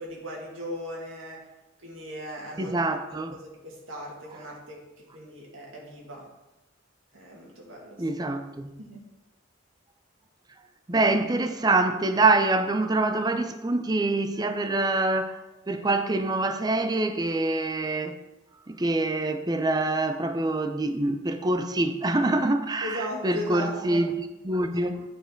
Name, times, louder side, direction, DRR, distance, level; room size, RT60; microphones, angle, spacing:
voice 1, 0.0-1.4 1.8-2.7 3.1-6.3 7.1-8.0 8.8-9.0 22.8-24.0 24.9-25.0, equal, 80° right, -3 dB, 2.3 m, -38 dB
voice 2, 2.6-3.4 8.0-8.7 10.9-15.4 15.7-18.2 18.7-24.1 24.4-25.0, right 2 dB, 20° right, 8 dB, 0.5 m, -25 dB
9.4 x 4.6 x 4.5 m, 0.97 s
head